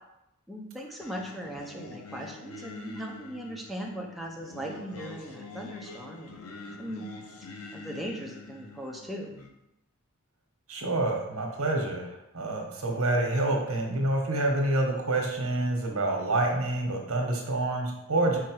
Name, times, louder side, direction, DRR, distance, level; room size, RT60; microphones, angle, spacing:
voice 1, 0.5-6.4 6.8-7.1 7.7-9.4, right 1 dB, ahead, -2 dB, 0.6 m, -39 dB
Singing, 1.0-9.5, left 3 dB, 80° left, 0.8 m, -45 dB
voice 2, 10.7-12.1 12.3-18.4, right 2 dB, 75° right, 1 dB, 1.3 m, -27 dB
4.8 x 4.6 x 4.7 m, 0.86 s
head